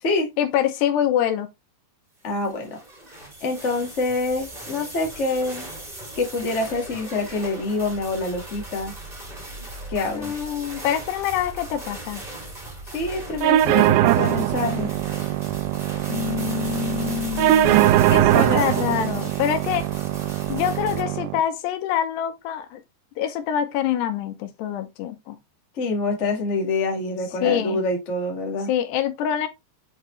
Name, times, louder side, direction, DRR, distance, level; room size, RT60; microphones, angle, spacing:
voice 1, 0.4-1.5 10.1-12.2 16.1-19.9 20.5-22.8 23.2-25.4 27.4-27.8 28.7-29.5, left 10 dB, 80° left, 3.1 m, -25 dB
voice 2, 2.2-2.7 3.4-5.7 6.1-8.9 9.9-10.3 12.9-14.9 18.3-18.6 25.8-28.7, left 3 dB, 60° left, 0.7 m, -26 dB
sound 1, 2.3-21.0, right 1 dB, 15° right, 1.5 m, -38 dB
sound 2, 13.4-21.4, right 14 dB, 85° right, 2.7 m, -21 dB
8.0 x 4.8 x 3.2 m
omnidirectional pair, 4.9 m